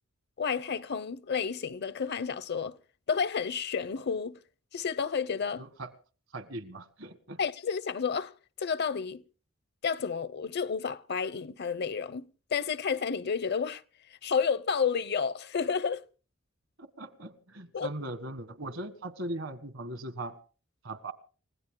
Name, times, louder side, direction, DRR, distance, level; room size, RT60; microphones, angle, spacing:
voice 1, 0.4-2.8 3.1-4.4 4.7-5.6 7.4-8.3 8.6-9.2 9.8-13.8 14.2-16.1 17.7-17.9, left 6 dB, 55° left, 0.7 m, -31 dB
voice 2, 5.6-5.9 6.3-7.4 16.8-20.4 20.8-21.1, right 1 dB, 75° right, 1.6 m, -39 dB
29.5 x 16.5 x 2.2 m
head